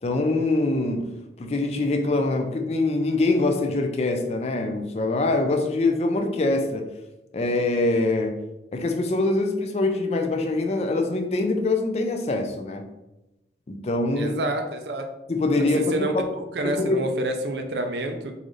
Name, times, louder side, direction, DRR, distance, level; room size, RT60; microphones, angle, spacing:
voice 1, 0.0-6.8 7.3-8.3 8.7-12.8 13.7-14.4 15.3-16.2 16.6-17.0, left 2 dB, 35° left, 4 dB, 0.4 m, -24 dB
voice 2, 14.2-15.1 15.8-18.3, right 1 dB, 70° right, 5 dB, 0.5 m, -28 dB
4.0 x 2.5 x 3.1 m, 0.95 s
head